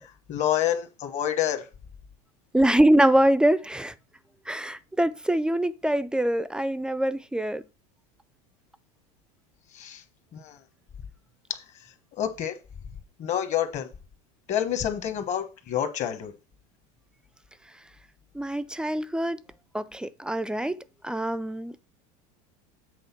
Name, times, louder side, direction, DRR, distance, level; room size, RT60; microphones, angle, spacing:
voice 1, 0.3-1.6 9.7-10.0 10.3-10.5 12.2-12.5 13.2-13.9 14.5-16.3, left 10 dB, 40° left, 1.1 m, -28 dB
voice 2, 2.5-3.9 4.5-7.6 18.3-19.4 19.7-21.8, right 1 dB, 5° right, 0.3 m, -24 dB
7.8 x 3.7 x 5.8 m
supercardioid pair, 130°, 19 cm